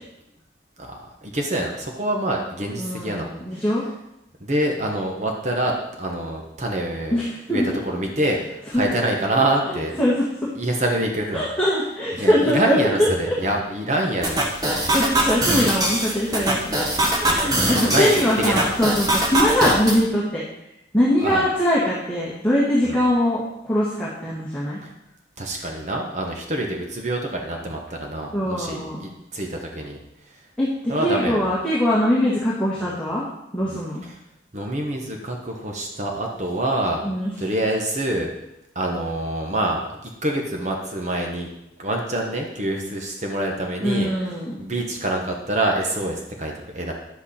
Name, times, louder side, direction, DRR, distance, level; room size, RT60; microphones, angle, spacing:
voice 1, 0.8-3.6 4.4-7.2 7.5-9.9 10.6-11.5 12.2-14.4 17.2-18.1 18.4-18.7 21.2-21.4 22.8-23.0 24.8-24.9 25.4-30.0 30.9-31.5 34.5-37.0 37.4-38.3 38.7-41.5 41.8-44.1 44.6-46.9, right 1 dB, 40° right, 1 dB, 1.2 m, -26 dB
voice 2, 2.8-3.8 7.1-7.7 8.7-8.9 9.6-10.5 11.3-13.3 14.7-16.7 17.2-20.4 20.9-24.8 28.3-29.0 30.6-34.0 37.0-37.3 43.8-44.6, equal, 5° left, -8 dB, 1.8 m, -22 dB
sound 1, 14.2-20.0, right 1 dB, 20° right, 1.3 m, -22 dB
10.5 x 8.0 x 4.3 m, 0.86 s
head